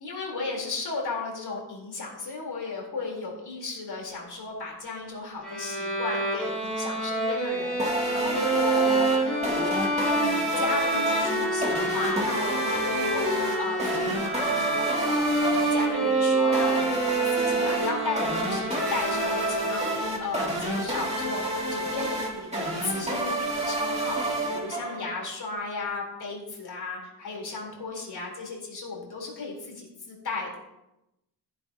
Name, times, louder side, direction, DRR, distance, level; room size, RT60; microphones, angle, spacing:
voice 1, 0.0-9.8 10.2-30.6, left 3 dB, 65° left, -1 dB, 3.9 m, -35 dB
Bowed string instrument, 5.4-20.1, right 2 dB, ahead, 4.7 m, -27 dB
sound 1, 7.8-25.2, right 1 dB, 15° right, 2.5 m, -30 dB
Wind instrument woodwind instrument, 10.9-18.4, right 4 dB, 65° right, 2.0 m, -37 dB
15.5 x 10.0 x 2.9 m, 0.89 s
wide cardioid pair, 135°, 41 cm